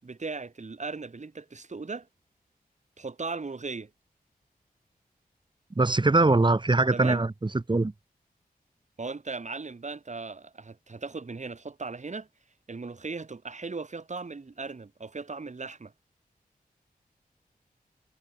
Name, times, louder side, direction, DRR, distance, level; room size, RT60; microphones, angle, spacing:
voice 1, 0.0-2.1 3.0-3.9 6.9-7.2 9.0-12.3 12.7-15.9, right 4 dB, 50° right, 7.3 m, -37 dB
voice 2, 5.7-7.3 7.5-7.9, right 2 dB, 30° right, 3.2 m, -22 dB
wide cardioid pair, 75°, 16 cm